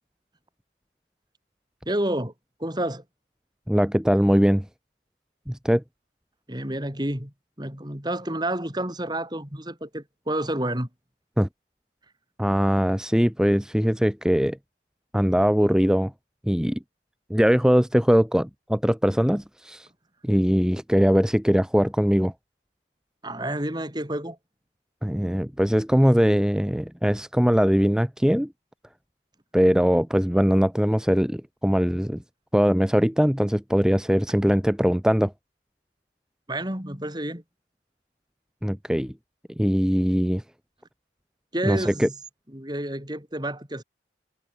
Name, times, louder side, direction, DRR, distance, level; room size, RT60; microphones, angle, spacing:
voice 1, 1.9-2.3 2.6-3.0 6.5-10.9 23.2-24.4 36.5-37.4 41.5-42.1 42.5-43.8, right 1 dB, 20° right, 4.5 m, -29 dB
voice 2, 3.7-4.7 5.5-5.8 11.4-11.5 12.4-14.6 15.1-16.1 16.4-16.8 17.3-19.9 20.2-22.3 25.0-28.5 29.5-32.2 32.5-35.3 38.6-39.1 39.6-40.4 41.6-42.1, equal, 5° right, 0.9 m, -21 dB
head